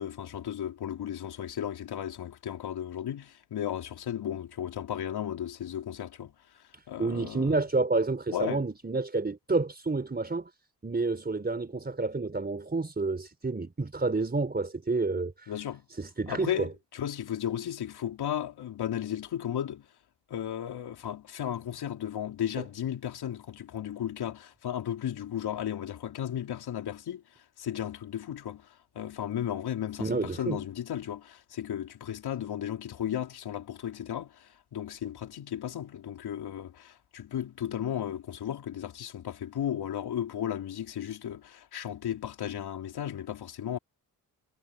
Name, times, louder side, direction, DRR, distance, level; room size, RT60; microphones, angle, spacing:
voice 1, 0.0-6.3 6.9-7.6 8.3-8.7 15.5-15.9 16.3-19.9 20.3-27.2 27.6-43.8, left 10 dB, 70° left, 4.3 m, -35 dB
voice 2, 6.7-10.5 10.8-15.5 16.0-16.7 30.0-30.6, right 3 dB, 25° right, 4.4 m, -29 dB
supercardioid pair, 60°, 39 cm